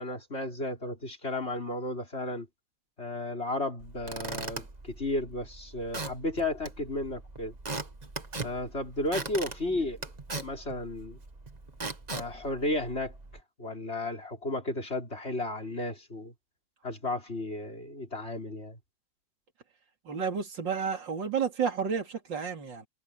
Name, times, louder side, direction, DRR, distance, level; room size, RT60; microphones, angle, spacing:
voice 1, 0.0-2.5 3.0-7.6 8.4-10.0 10.4-11.2 12.1-13.1 13.6-16.3 16.8-18.8, left 2 dB, 30° left, 5.1 m, -33 dB
Squeak / Wood, 3.8-13.4, right 3 dB, 20° right, 1.5 m, -40 dB
voice 2, 20.1-22.9, right 6 dB, 60° right, 3.5 m, -31 dB
omnidirectional pair, 2.2 m